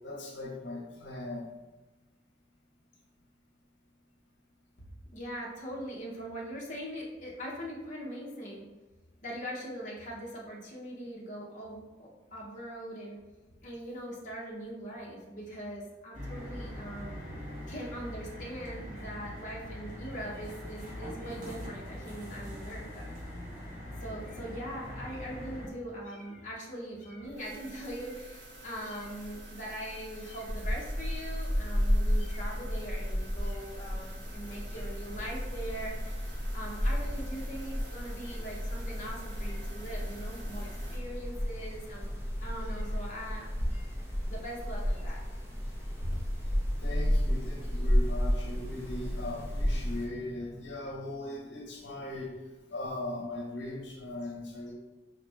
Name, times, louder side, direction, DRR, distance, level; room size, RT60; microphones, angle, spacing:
voice 1, 0.0-1.5 46.1-46.5 46.8-52.3 52.7-54.7, left 2 dB, 70° left, -2 dB, 0.9 m, -39 dB
voice 2, 5.1-8.6 9.2-13.2 13.6-17.1 17.7-23.1 24.0-45.2 46.0-46.1, equal, 45° left, -4 dB, 0.8 m, -41 dB
sound 1, 16.1-25.7, left 1 dB, 45° right, 1.4 m, -42 dB
sound 2, 27.2-41.0, equal, 65° right, 1.1 m, -47 dB
sound 3, 30.4-50.1, equal, 15° right, 0.7 m, -32 dB
5.1 x 2.4 x 3.3 m, 1.2 s
head